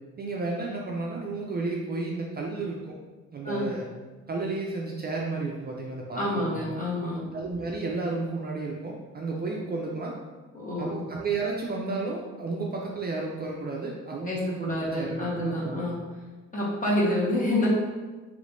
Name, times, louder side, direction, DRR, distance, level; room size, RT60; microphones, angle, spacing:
voice 1, 0.2-3.0 3.3-3.9 4.3-6.6 7.3-10.2 10.8-15.9, right 3 dB, 35° right, -2 dB, 0.4 m, -32 dB
voice 2, 6.1-7.2 10.5-11.0 14.3-16.0 16.5-17.7, left 1 dB, 25° left, -6 dB, 1.2 m, -28 dB
3.2 x 3.1 x 2.5 m, 1.3 s
cardioid pair, 90°, 30 cm